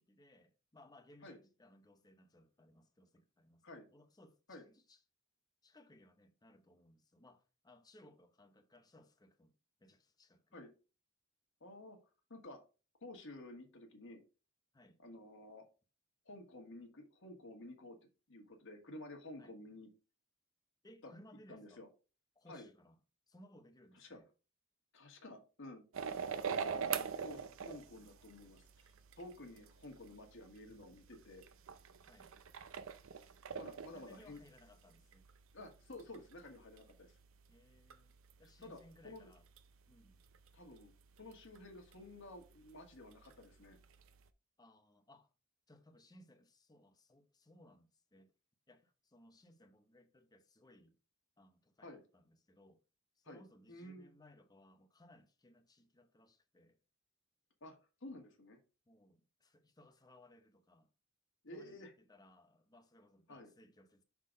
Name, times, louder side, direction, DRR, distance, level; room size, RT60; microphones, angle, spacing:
voice 1, 0.0-5.0 5.6-9.5 9.8-10.6 14.7-15.0 19.4-19.5 20.8-21.8 22.4-23.0 23.3-24.3 26.5-27.6 32.1-32.3 33.6-35.3 37.5-39.5 39.9-40.2 44.6-45.3 45.7-48.3 48.7-51.0 51.4-52.8 53.2-56.8 58.9-60.9 61.5-64.0, left 1 dB, 20° left, 0.7 m, -63 dB
voice 2, 11.6-12.0 12.3-12.6 13.0-14.2 15.0-15.6 16.2-18.0 18.3-19.9 21.0-21.1 21.5-21.9 22.5-22.7 23.9-24.2 24.9-25.8 26.9-31.4 33.6-34.4 35.5-37.2 38.6-39.3 40.5-40.9 41.2-43.8 51.8-52.0 53.2-53.4 53.7-54.1 57.6-58.6 61.4-61.9 63.3-63.5, left 1 dB, 60° left, 1.4 m, -52 dB
sound 1, 25.9-44.3, right 6 dB, 70° right, 0.5 m, -46 dB
5.9 x 3.8 x 5.0 m
head